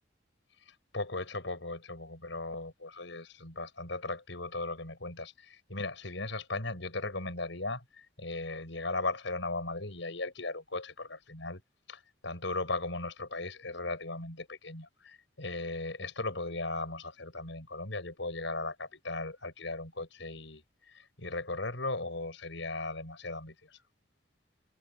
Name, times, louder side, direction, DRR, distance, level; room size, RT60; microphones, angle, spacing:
voice 1, 0.7-11.6 11.9-20.6 20.9-23.8, left 2 dB, 70° left, 5.8 m, -37 dB
head